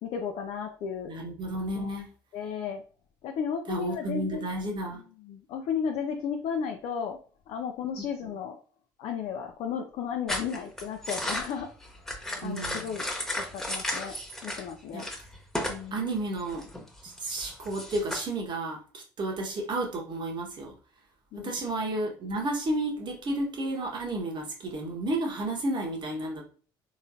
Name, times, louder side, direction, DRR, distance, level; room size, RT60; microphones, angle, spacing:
voice 1, 0.0-1.1 1.8-1.9 2.3-2.8 3.2-4.5 5.3-7.2 7.5-8.6 9.0-11.7 12.4-13.1 13.5-14.1 14.4-15.1 15.7-16.1 21.3-21.5, left 7 dB, 60° left, 3 dB, 0.5 m, -34 dB
voice 2, 1.1-2.1 3.7-5.0 8.0-8.3 12.4-13.0 14.9-15.0 15.9-16.7 17.0-20.7 21.4-26.5, right 2 dB, 45° right, 1 dB, 1.3 m, -32 dB
sound 1, 10.3-14.7 15.0-15.8 16.1-18.2, left 1 dB, 5° left, 1.2 m, -34 dB
3.7 x 3.1 x 2.6 m, 0.39 s
hypercardioid pair, 55°, 11 cm